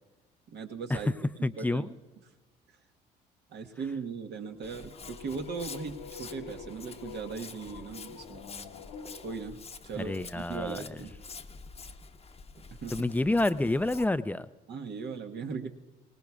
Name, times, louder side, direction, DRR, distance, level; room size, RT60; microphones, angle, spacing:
voice 1, 0.5-1.1 1.6-1.9 3.5-8.5 9.2-11.1 12.8-13.1 14.7-15.7, right 5 dB, 55° right, 4 dB, 1.4 m, -38 dB
voice 2, 1.4-1.9 9.9-11.0 12.9-14.5, left 2 dB, 10° left, 14 dB, 0.5 m, -29 dB
sound 1, 4.5-9.4, left 6 dB, 75° left, 1.3 m, -47 dB
Walk footsteps, 4.6-14.0, left 4 dB, 30° left, 1.0 m, -47 dB
23.5 x 19.5 x 2.4 m, 1.2 s
hypercardioid pair, 55°, 21 cm